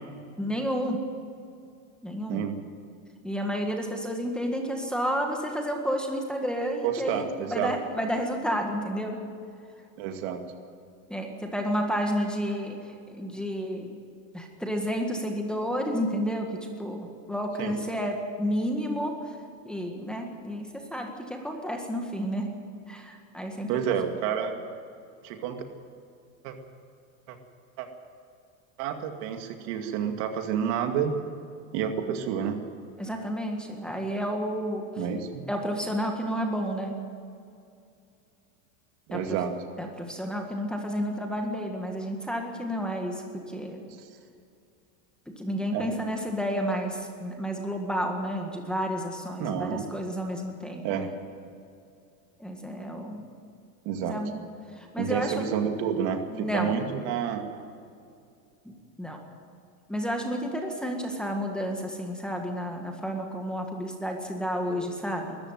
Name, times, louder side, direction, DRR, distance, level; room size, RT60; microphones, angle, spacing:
voice 1, 0.4-1.0 2.0-2.5 3.2-9.2 11.1-13.9 14.3-19.4 19.7-22.5 22.9-23.8 33.0-34.9 35.5-37.0 39.1-39.4 39.8-43.8 45.4-51.1 52.4-53.2 54.0-54.4 54.8-55.5 56.3-56.7 58.7-59.3 59.9-65.4, equal, ahead, 1 dB, 1.7 m, -31 dB
voice 2, 6.8-7.7 10.0-10.4 17.6-17.8 23.7-24.5 25.2-25.6 26.4-26.6 27.3-27.4 27.8-27.9 28.8-31.1 31.7-32.6 35.0-35.4 39.1-39.6 45.7-45.9 49.4-49.9 50.8-51.1 53.9-54.2 55.0-57.4, right 8 dB, 55° right, 5 dB, 2.4 m, -29 dB
21.0 x 14.0 x 9.2 m, 2.5 s
supercardioid pair, 155°, 41 cm